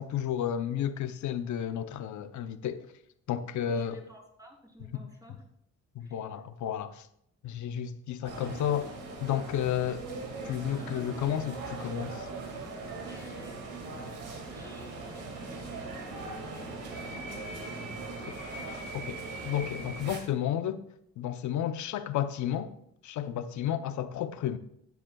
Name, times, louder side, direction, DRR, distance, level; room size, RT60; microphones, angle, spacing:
voice 1, 0.0-2.8 3.3-4.0 4.9-5.0 5.9-7.1 7.4-8.9 9.2-10.1 10.5-12.3 18.9-20.8 21.2-22.7 23.0-24.6, left 10 dB, 75° left, 0.8 m, -32 dB
voice 2, 3.7-5.4 6.0-6.4 10.8-11.1 13.0-16.8 17.1-17.8, equal, 10° right, 3.8 m, -52 dB
sound 1, 8.2-20.2, right 3 dB, 85° right, 2.2 m, -40 dB
13.5 x 9.5 x 2.3 m
cardioid pair, 90°, 30 cm